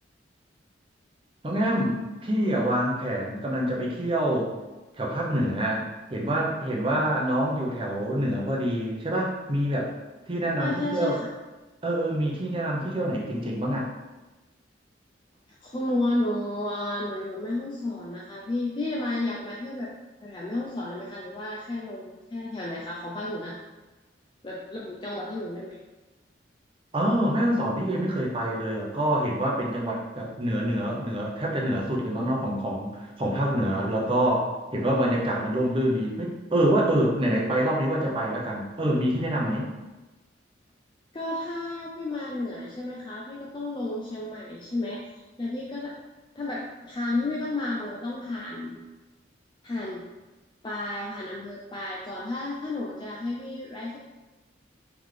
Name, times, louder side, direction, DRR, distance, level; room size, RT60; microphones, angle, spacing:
voice 1, 1.4-4.5 5.0-9.9 10.3-11.2 11.8-13.9 26.9-39.7, right 1 dB, 30° right, -2 dB, 0.7 m, -26 dB
voice 2, 10.6-11.3 15.6-19.9 20.2-23.6 24.4-25.8 41.1-45.0 45.4-45.9 46.4-48.8 49.6-50.0 50.6-54.0, left 2 dB, 25° left, -3 dB, 0.4 m, -32 dB
3.8 x 3.4 x 3.2 m, 1.1 s
head